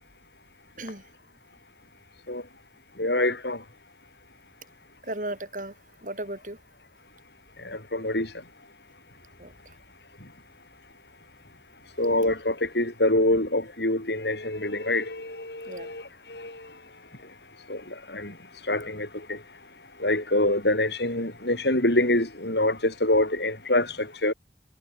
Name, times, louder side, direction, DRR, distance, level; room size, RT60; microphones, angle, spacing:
voice 1, 3.0-3.6 7.6-8.3 12.0-16.7 17.7-18.4 18.7-19.4 20.0-24.3, left 1 dB, 70° left, 7.9 m, -26 dB
voice 2, 5.0-5.7 6.0-6.6 9.4-9.5 15.7-15.9, right 1 dB, 45° right, 6.4 m, -35 dB
head